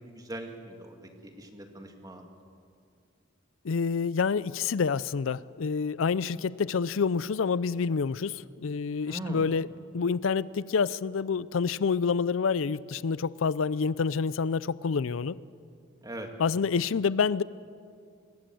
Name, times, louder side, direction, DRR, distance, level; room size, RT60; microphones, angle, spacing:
voice 1, 0.0-2.3 9.1-9.5 16.0-16.3, right 1 dB, 20° right, 4 dB, 2.3 m, -41 dB
voice 2, 3.6-9.7 9.9-15.4 16.4-17.4, left 5 dB, 90° left, 19 dB, 0.5 m, -28 dB
24.5 x 19.5 x 7.8 m, 2.3 s
head